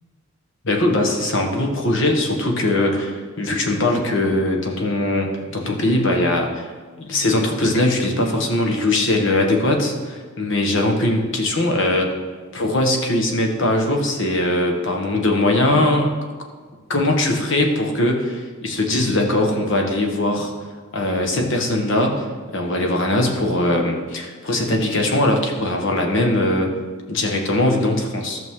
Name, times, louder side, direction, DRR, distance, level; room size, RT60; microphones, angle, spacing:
voice 1, 0.6-6.6 7.0-12.1 12.5-16.1 16.9-20.5 20.9-22.2 22.5-26.7 27.1-28.4, left 1 dB, 65° left, 2 dB, 1.3 m, -20 dB
14.0 x 6.3 x 3.7 m, 1.5 s
head